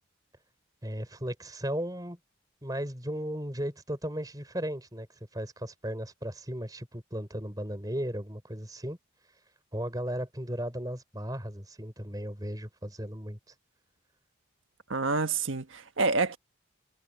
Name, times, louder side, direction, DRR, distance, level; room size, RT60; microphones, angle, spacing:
voice 1, 0.8-2.2 2.6-5.1 5.3-9.0 9.7-13.4, equal, 20° right, 4.3 m, -35 dB
voice 2, 14.9-16.4, right 3 dB, 80° right, 1.3 m, -28 dB
head